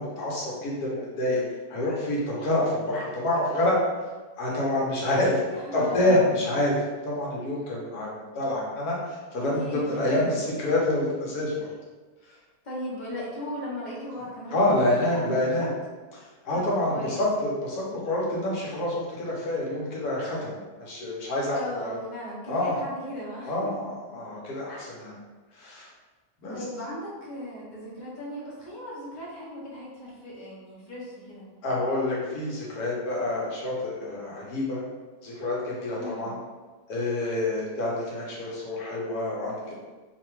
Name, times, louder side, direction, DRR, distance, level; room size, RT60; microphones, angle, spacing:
voice 1, 0.0-1.4 1.7-3.8 4.4-5.4 5.7-6.8 7.0-11.7 14.5-15.7 16.1-21.9 22.5-22.8 23.4-25.2 25.5-25.9 26.4-26.6 31.6-34.8 35.2-36.4 36.9-39.8, left 1 dB, 85° left, -5 dB, 1.3 m, -27 dB
voice 2, 5.5-6.3 9.4-10.3 12.6-15.7 16.5-17.2 21.5-23.7 24.7-24.9 26.5-31.5 35.9-36.3 39.6-39.8, left 1 dB, 45° left, -5 dB, 0.6 m, -37 dB
3.0 x 2.2 x 3.0 m, 1.3 s
omnidirectional pair, 1.6 m